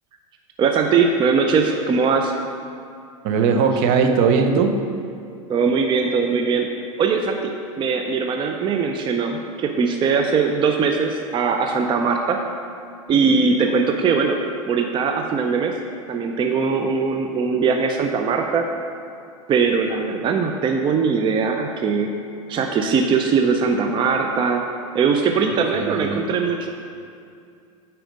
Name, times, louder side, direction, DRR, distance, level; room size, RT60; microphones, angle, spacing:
voice 1, 0.6-2.3 5.5-6.7 7.0-12.4 13.1-14.4 14.7-15.8 16.1-18.7 19.5-22.1 22.5-24.6 24.9-26.7, right 5 dB, 25° right, 4 dB, 0.5 m, -20 dB
voice 2, 3.2-4.8 25.7-26.2, right 5 dB, 50° right, 6 dB, 0.8 m, -19 dB
9.1 x 4.4 x 5.1 m, 2.4 s
hypercardioid pair, 100°, 18 cm